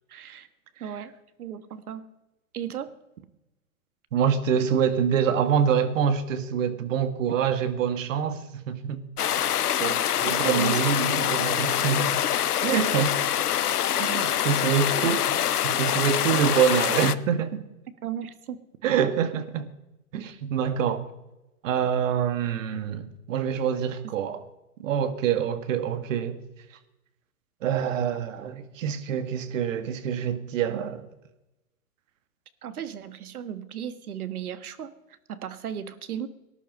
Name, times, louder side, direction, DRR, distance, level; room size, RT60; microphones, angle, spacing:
voice 1, 0.1-0.5 0.8-1.1 1.4-2.0 2.5-2.9 10.3-10.8 11.1-11.6 14.1-14.5 15.0-15.1 18.0-18.6 24.0-24.1 32.6-36.3, right 9 dB, 75° right, 1.5 m, -36 dB
voice 2, 4.1-9.1 9.8-12.2 12.6-13.2 14.0-15.4 15.6-17.6 18.8-19.7 20.1-21.1 21.6-24.4 24.8-26.4 27.6-31.1, right 8 dB, 60° right, 1.7 m, -26 dB
sound 1, 9.2-17.2, left 10 dB, 85° left, 0.8 m, -25 dB
19.0 x 11.0 x 5.4 m
hypercardioid pair, 125°, 44 cm